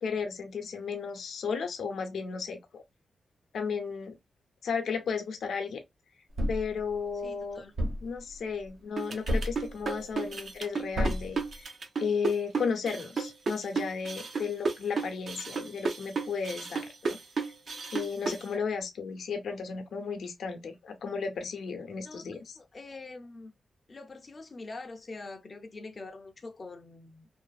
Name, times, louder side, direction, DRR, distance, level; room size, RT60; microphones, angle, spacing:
voice 1, 0.0-2.8 3.5-4.2 4.6-5.8 6.5-7.6 8.0-11.7 12.0-17.2 17.9-22.6, left 5 dB, 85° left, 0.6 m, -34 dB
Thump thud, 6.4-6.7 7.8-8.1 9.3-9.7 10.9-11.4, equal, 75° right, 0.9 m, -29 dB
voice 2, 7.2-7.7 18.5-18.7 22.0-22.2 22.6-23.5 23.9-27.3, left 3 dB, 30° left, 0.4 m, -44 dB
sound 1, 9.0-18.5, right 4 dB, 50° right, 0.5 m, -33 dB
2.6 x 2.4 x 2.2 m
wide cardioid pair, 165°, 0 cm